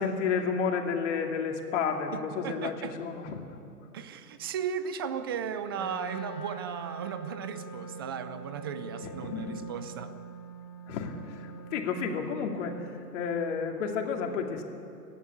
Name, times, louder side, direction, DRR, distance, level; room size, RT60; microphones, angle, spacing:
voice 1, 0.0-3.6 9.0-9.6 10.9-12.8 13.1-14.6, left 6 dB, 50° left, 2 dB, 2.6 m, -31 dB
voice 2, 2.1-3.0 3.9-10.2, right 7 dB, 15° right, 11 dB, 0.4 m, -36 dB
Wind instrument woodwind instrument, 5.7-12.9, right 3 dB, 30° left, 5.5 m, -43 dB
30.0 x 11.5 x 8.5 m, 2.6 s
hypercardioid pair, 135°, 47 cm